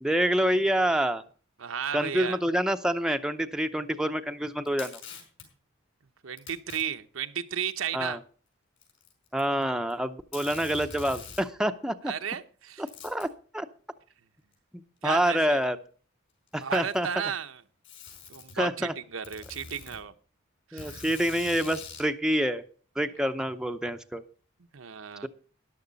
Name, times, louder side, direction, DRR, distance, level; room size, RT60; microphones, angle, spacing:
voice 1, 0.0-1.2 1.9-5.0 7.9-8.2 9.3-12.1 12.8-13.7 14.7-15.8 16.5-17.1 18.5-18.9 20.7-22.6 23.0-24.2, equal, 5° right, 7 dB, 0.7 m, -27 dB
voice 2, 1.6-2.4 6.2-8.2 12.1-12.8 15.0-15.6 16.6-17.6 18.3-20.1 20.7-21.0 24.7-25.3, right 7 dB, 80° right, 9 dB, 0.9 m, -34 dB
Packing tape duct tape, 4.6-5.5 6.4-6.8 7.7-7.8 8.8-9.6 9.9-10.0 10.3-11.5 12.9-13.3 14.5-14.6 15.6-15.7 16.5-17.1 17.8-18.6 19.2-20.0 20.8-22.1, left 5 dB, 65° left, 5.2 m, -44 dB
13.5 x 10.5 x 4.0 m, 0.40 s
head